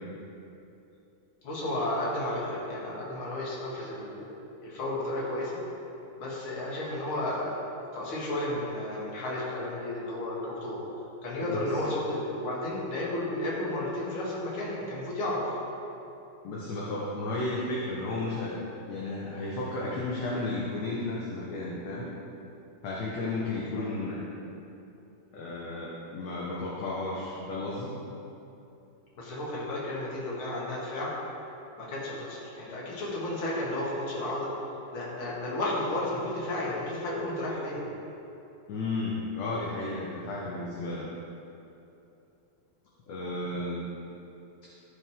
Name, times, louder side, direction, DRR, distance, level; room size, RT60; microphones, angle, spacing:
voice 1, 1.4-4.3 4.6-5.6 6.2-7.6 7.9-10.8 11.2-15.6 23.8-23.9 29.2-31.1 31.8-34.5 34.9-37.9, left 1 dB, 45° left, -6 dB, 2.3 m, -32 dB
voice 2, 16.4-18.6 18.9-22.1 22.8-24.3 25.3-28.0 38.7-41.1 43.1-43.9, left 2 dB, 65° left, -5 dB, 1.9 m, -33 dB
14.0 x 6.4 x 3.7 m, 2.9 s
omnidirectional pair, 4.1 m